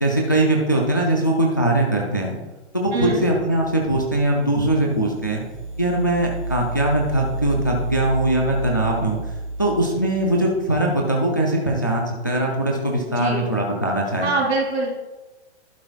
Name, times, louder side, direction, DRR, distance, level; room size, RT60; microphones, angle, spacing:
voice 1, 0.0-2.3 2.7-5.4 5.8-9.2 9.6-14.3, right 1 dB, 20° left, -1 dB, 0.4 m, -21 dB
voice 2, 2.9-3.2 13.1-13.5 14.2-14.9, right 3 dB, 65° right, 0 dB, 3.3 m, -24 dB
sound 1, 3.4-10.9, right 2 dB, 30° right, 1.0 m, -31 dB
11.5 x 9.6 x 2.3 m, 1.1 s
hypercardioid pair, 180°, 34 cm